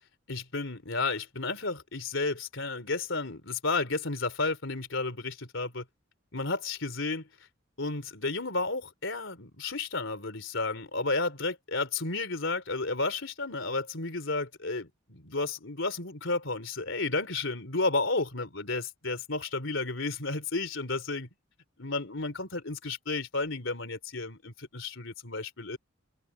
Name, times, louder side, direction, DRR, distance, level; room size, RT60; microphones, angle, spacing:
voice 1, 0.3-5.8 6.3-7.3 7.8-21.3 21.8-25.8, left 3 dB, 65° left, 4.0 m, -32 dB
open air
head